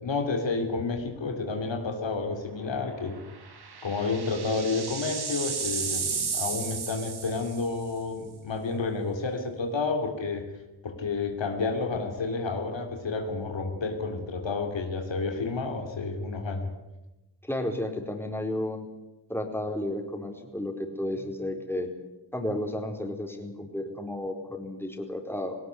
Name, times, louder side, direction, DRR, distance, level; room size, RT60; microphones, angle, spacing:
voice 1, 0.0-3.2 3.8-10.5 10.8-16.7, left 3 dB, 75° left, 4 dB, 2.9 m, -30 dB
sound 1, 1.0-1.3 1.7-1.8 3.2-7.8, right 5 dB, 55° right, 2.4 m, -33 dB
voice 2, 17.4-18.9 19.3-21.9 22.3-25.6, left 1 dB, 5° left, 3 dB, 4.5 m, -32 dB
18.5 x 18.0 x 9.6 m, 1.0 s
cardioid pair, 55°, 45 cm